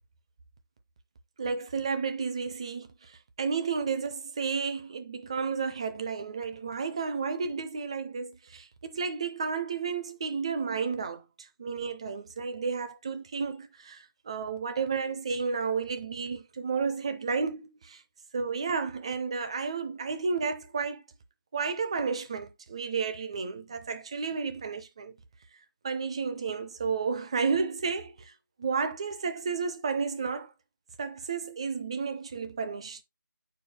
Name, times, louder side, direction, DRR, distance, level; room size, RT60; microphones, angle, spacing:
voice 1, 1.4-18.0 18.3-21.0 21.5-25.1 25.8-28.3 28.6-30.5 31.0-33.0, right 5 dB, 15° right, 0.4 m, -32 dB
8.0 x 4.7 x 3.2 m
figure-of-eight pair, 160°, 11 cm